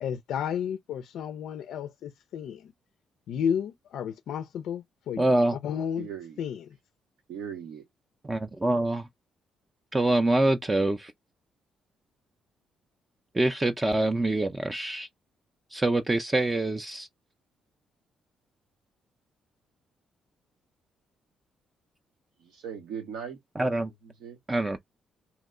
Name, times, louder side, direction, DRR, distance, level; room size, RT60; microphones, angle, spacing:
voice 1, 0.0-2.7 3.3-6.1 6.4-6.8, left 8 dB, 75° left, 0.3 m, -32 dB
voice 2, 5.2-5.6 8.2-9.1 9.9-11.1 13.3-15.1 15.7-17.1 23.6-23.9 24.5-24.8, right 2 dB, 20° right, 0.4 m, -25 dB
voice 3, 6.0-6.4 7.3-7.8 22.4-23.4 24.2-24.4, right 7 dB, 90° right, 0.8 m, -38 dB
2.9 x 2.1 x 3.6 m
cardioid pair, 90°, 0 cm